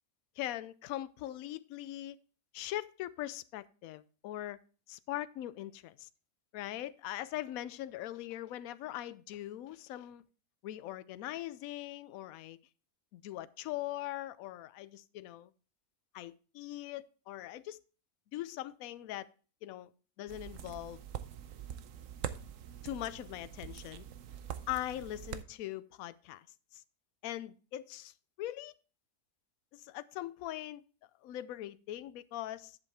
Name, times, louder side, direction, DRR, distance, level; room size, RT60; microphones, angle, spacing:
voice 1, 0.4-2.2 2.5-4.6 4.9-6.1 6.5-10.2 10.6-12.6 13.1-15.5 16.1-17.8 18.3-19.3 19.6-19.9 20.2-21.0 22.8-24.0 24.7-26.5 26.7-26.8 27.2-28.7 29.7-30.8 31.2-32.8, left 14 dB, 75° left, 1.0 m, -41 dB
sound 1, 20.3-25.4, right 10 dB, 65° right, 1.0 m, -44 dB
10.5 x 7.2 x 3.4 m
omnidirectional pair, 1.6 m